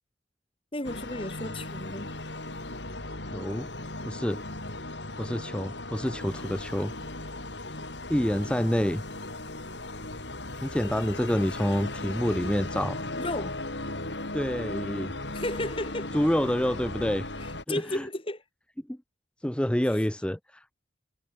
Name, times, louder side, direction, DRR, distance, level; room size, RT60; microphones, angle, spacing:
voice 1, 0.7-2.1 13.2-13.6 15.3-16.1 17.7-18.4, left 1 dB, 30° left, 5.1 m, -33 dB
sound 1, 0.8-17.6, left 2 dB, 75° left, 7.5 m, -37 dB
voice 2, 3.3-3.7 4.1-4.4 5.2-6.9 8.1-9.0 10.6-13.0 14.3-15.1 16.1-17.3 17.7-18.1 18.9-19.0 19.4-20.6, equal, 5° left, 0.7 m, -27 dB
head